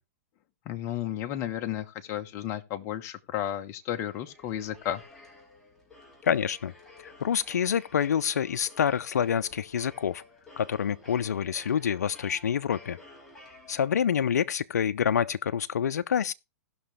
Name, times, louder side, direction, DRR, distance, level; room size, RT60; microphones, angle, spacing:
voice 1, 0.6-5.0, left 11 dB, 35° left, 1.2 m, -33 dB
sound 1, 3.8-14.3, left 2 dB, 5° left, 3.3 m, -53 dB
voice 2, 6.2-6.7 7.0-10.2 10.6-13.0 13.7-16.3, left 8 dB, 90° left, 0.5 m, -27 dB
17.5 x 6.1 x 3.3 m
hypercardioid pair, 135°, 9 cm